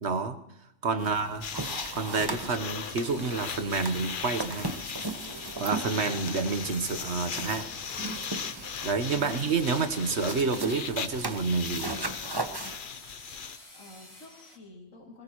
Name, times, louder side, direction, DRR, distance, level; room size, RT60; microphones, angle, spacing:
voice 1, 0.0-0.4 0.8-1.4 1.9-4.8 5.6-7.7 8.8-12.0, right 4 dB, 50° right, 9 dB, 1.3 m, -29 dB
sound 1, 1.0-12.8, right 2 dB, 20° right, 0.8 m, -38 dB
sound 2, 1.4-13.6, left 7 dB, 45° left, 0.7 m, -38 dB
sound 3, 2.6-14.6, left 1 dB, 20° left, 2.9 m, -51 dB
voice 2, 13.7-15.2, left 2 dB, 65° left, -1 dB, 3.0 m, -48 dB
21.0 x 19.0 x 3.0 m, 0.78 s
omnidirectional pair, 1.5 m